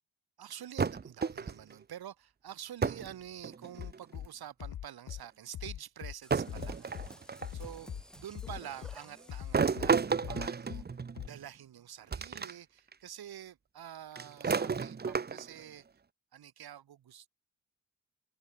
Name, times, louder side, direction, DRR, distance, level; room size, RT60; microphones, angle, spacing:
voice 1, 0.4-7.9 8.1-10.8 11.2-15.9 16.3-17.3, right 10 dB, 75° right, 2.3 m, -47 dB
sound 1, 0.8-1.7 2.8-3.1 3.4-4.0 5.1-5.2 6.3-7.6 9.5-11.4 12.1-12.5 12.9-13.0 14.2-15.6, right 5 dB, 25° right, 0.7 m, -32 dB
Bass drum, 3.8-4.3 4.6-5.2 5.5-6.1 6.5-7.1 7.4-8.0 8.3-9.0 9.3-9.9 10.2-10.8 11.2-11.3, left 11 dB, 65° left, 1.0 m, -41 dB
sound 2, 6.2-10.4, equal, ahead, 6.2 m, -53 dB
supercardioid pair, 45°, 38 cm